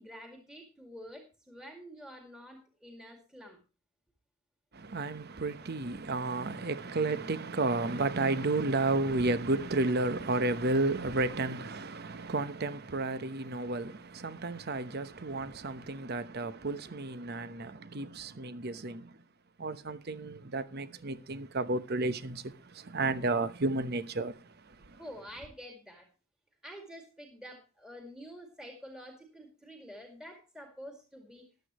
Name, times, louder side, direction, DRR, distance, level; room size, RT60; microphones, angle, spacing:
voice 1, 0.0-3.6 16.9-17.0 25.0-26.1 26.6-31.4, equal, 5° right, 2.2 m, -48 dB
voice 2, 4.7-19.1 19.6-24.3, right 2 dB, 50° right, 0.9 m, -32 dB
14.5 x 11.5 x 3.0 m
head